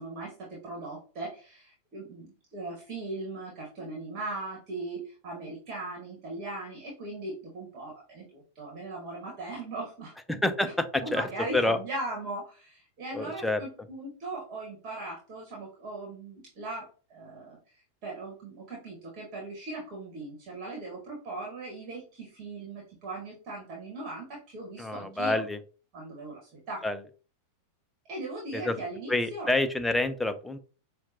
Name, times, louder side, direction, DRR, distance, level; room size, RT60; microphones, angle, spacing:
voice 1, 0.0-10.1 10.6-17.6 18.0-25.4 25.9-26.8 28.0-29.5, right 2 dB, 35° right, -3 dB, 1.5 m, -39 dB
voice 2, 10.4-11.2 11.5-11.8 13.1-13.6 24.8-25.6 26.8-27.0 28.5-28.7 29.1-30.6, left 2 dB, 5° left, 8 dB, 0.5 m, -27 dB
5.7 x 2.3 x 2.7 m, 0.37 s
figure-of-eight pair, 90°, 0 cm